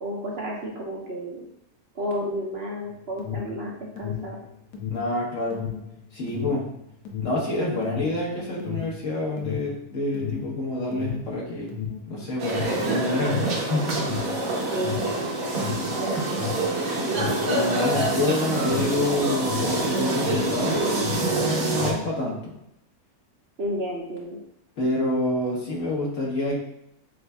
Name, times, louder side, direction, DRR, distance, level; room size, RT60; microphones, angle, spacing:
voice 1, 0.0-1.5 1.9-4.4 14.7-15.1 15.9-16.4 23.6-24.4, equal, 55° right, -3 dB, 0.8 m, -31 dB
Alarm, 2.9-20.6 20.9-22.2, left 8 dB, 75° left, 1.2 m, -34 dB
voice 2, 4.9-5.6 6.1-6.6 7.2-11.8 12.1-14.1 17.5-22.5 24.8-26.5, left 2 dB, 60° left, -4 dB, 1.4 m, -27 dB
sound 1, 12.4-21.9, right 2 dB, 70° right, 1.4 m, -26 dB
7.7 x 2.6 x 2.3 m, 0.79 s
omnidirectional pair, 1.6 m